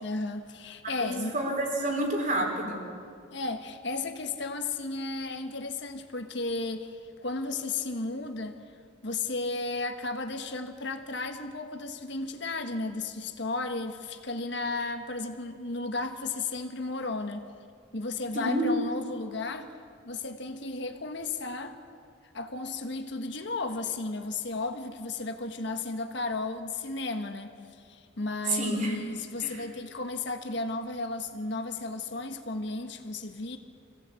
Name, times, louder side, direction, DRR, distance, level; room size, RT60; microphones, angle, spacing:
voice 1, 0.0-1.3 3.3-8.6 9.0-17.4 17.9-19.7 20.0-21.8 22.3-27.5 27.8-33.6, left 3 dB, 60° left, 6 dB, 1.5 m, -34 dB
voice 2, 1.0-2.9 18.3-18.7 28.5-29.0 29.4-29.6, right 1 dB, 40° right, 1 dB, 3.8 m, -29 dB
25.0 x 16.5 x 8.4 m, 2.2 s
head